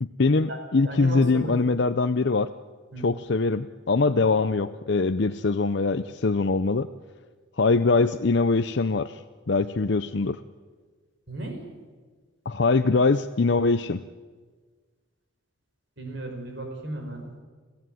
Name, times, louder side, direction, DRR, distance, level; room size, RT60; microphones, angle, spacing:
voice 1, 0.0-2.5 3.0-6.9 7.6-9.2 9.5-10.4 12.5-14.0, left 3 dB, 55° left, 9 dB, 0.6 m, -23 dB
voice 2, 0.8-1.8 2.9-3.1 11.3-11.6 16.0-17.3, right 1 dB, 55° right, 4 dB, 5.3 m, -35 dB
27.5 x 15.0 x 9.3 m, 1.5 s
head